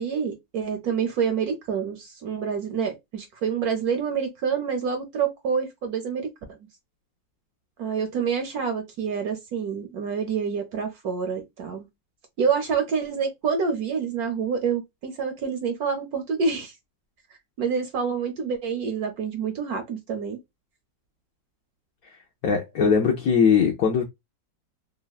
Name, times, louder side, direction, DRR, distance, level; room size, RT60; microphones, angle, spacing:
voice 1, 0.0-6.3 7.8-11.9 12.4-16.7 17.6-20.4, right 6 dB, 70° right, 0.9 m, -27 dB
voice 2, 22.4-24.0, left 6 dB, 75° left, 0.8 m, -20 dB
3.2 x 2.1 x 2.3 m
omnidirectional pair, 2.0 m